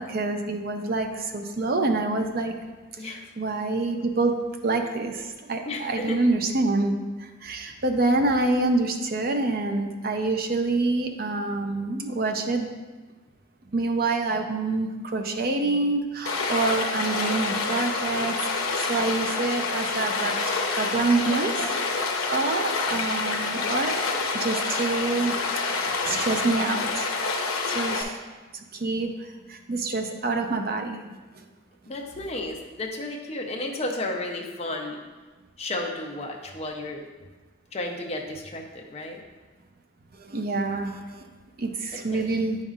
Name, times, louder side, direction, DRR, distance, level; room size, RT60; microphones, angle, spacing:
voice 1, 0.0-2.5 3.0-4.4 4.6-6.9 7.2-12.7 13.7-20.3 20.8-23.9 24.3-27.1 27.7-28.2 28.5-31.0 40.2-41.3 41.6-42.6, right 3 dB, 45° right, 5 dB, 0.5 m, -27 dB
voice 2, 5.7-6.2 31.9-35.0 35.6-37.0 37.7-39.2 42.1-42.3, left 2 dB, 30° left, 1 dB, 0.6 m, -33 dB
Stream, 16.3-28.0, left 4 dB, 85° left, 0.8 m, -27 dB
9.0 x 5.4 x 2.4 m, 1.3 s
head